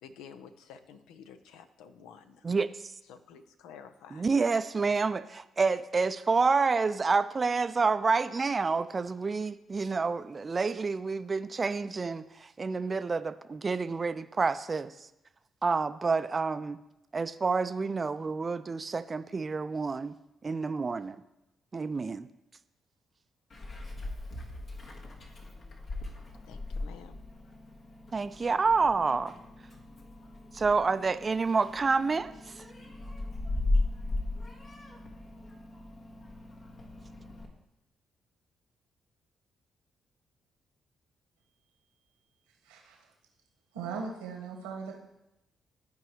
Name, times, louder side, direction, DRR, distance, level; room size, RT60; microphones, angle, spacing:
voice 1, 0.0-2.5 3.1-4.3 26.4-27.2, left 7 dB, 80° left, 10 dB, 0.5 m, -51 dB
voice 2, 2.4-2.9 4.1-15.1 15.6-16.8 17.1-20.2 20.4-21.2 21.7-22.3 28.1-29.3 30.5-32.7, right 4 dB, 40° right, 11 dB, 0.4 m, -28 dB
Meow, 23.5-37.4, left 2 dB, 60° left, 1.6 m, -37 dB
voice 3, 42.6-43.0 43.7-45.0, right 5 dB, 90° right, 0 dB, 1.3 m, -38 dB
14.0 x 4.7 x 3.1 m, 0.90 s
hypercardioid pair, 45°, 0 cm